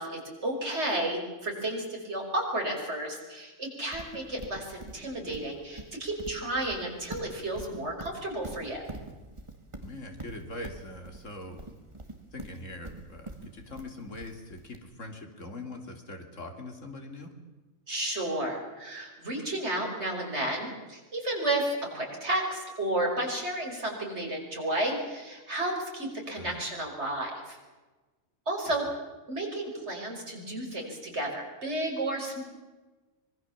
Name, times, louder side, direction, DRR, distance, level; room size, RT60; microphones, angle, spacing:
voice 1, 0.0-8.8 17.9-27.6 28.5-28.9 29.3-32.4, right 1 dB, 55° right, 0 dB, 5.8 m, -32 dB
Livestock farm animals working animals, 3.9-14.8, right 2 dB, 20° right, 2.2 m, -44 dB
voice 2, 9.8-11.9 12.3-17.3 26.3-26.6 28.7-28.8, left 2 dB, 70° left, 4 dB, 3.2 m, -42 dB
25.0 x 22.0 x 7.3 m, 1.2 s
omnidirectional pair, 1.3 m